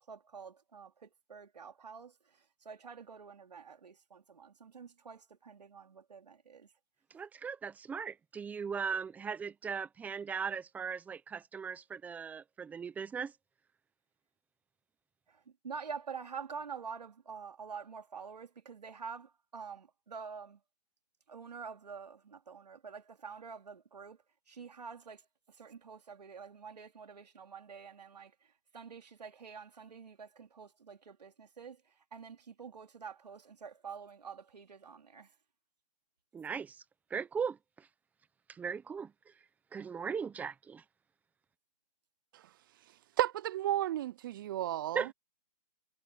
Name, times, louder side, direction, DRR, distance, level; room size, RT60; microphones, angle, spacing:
voice 1, 0.1-6.7 15.3-20.6 21.3-24.2 24.5-25.2 25.5-28.3 28.7-35.3, right 6 dB, 80° right, 3.6 m, -47 dB
voice 2, 7.1-13.3 36.3-36.8 37.1-37.9 38.5-39.1 39.7-40.8 44.9-45.1, right 6 dB, 5° right, 1.0 m, -38 dB
voice 3, 43.2-45.1, right 13 dB, 30° right, 0.5 m, -32 dB
hypercardioid pair, 150°, 21 cm